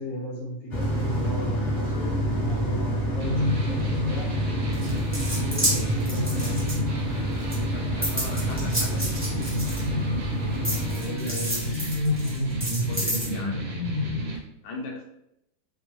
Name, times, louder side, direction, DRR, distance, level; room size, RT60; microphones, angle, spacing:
voice 1, 0.0-4.3 5.2-6.6 10.9-12.0, right 1 dB, 55° left, -5 dB, 1.6 m, -34 dB
sound 1, 0.7-11.0, equal, 30° left, 1.5 m, -28 dB
sound 2, 3.2-14.4, left 1 dB, 65° right, 0.6 m, -30 dB
sound 3, 4.7-7.1 7.5-10.2 10.6-13.3, right 1 dB, 15° right, 0.5 m, -30 dB
voice 2, 7.7-9.1 12.9-13.7 14.6-15.0, left 2 dB, 75° left, 0 dB, 1.3 m, -38 dB
3.6 x 2.2 x 3.0 m, 0.78 s
omnidirectional pair, 2.0 m